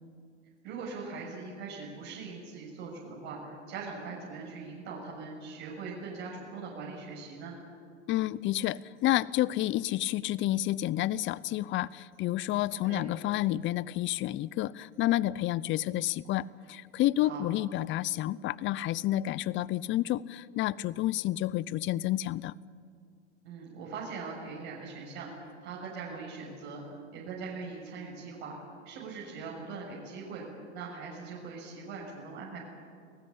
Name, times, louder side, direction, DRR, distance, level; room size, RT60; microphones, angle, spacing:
voice 1, 0.6-7.6 12.8-13.0 17.2-17.5 23.4-28.5 28.9-30.4 30.7-32.6, right 4 dB, 55° right, -3 dB, 6.9 m, -41 dB
voice 2, 8.1-22.5, left 14 dB, 30° left, 21 dB, 0.7 m, -30 dB
29.5 x 18.5 x 8.7 m, 2.2 s
hypercardioid pair, 100°, 37 cm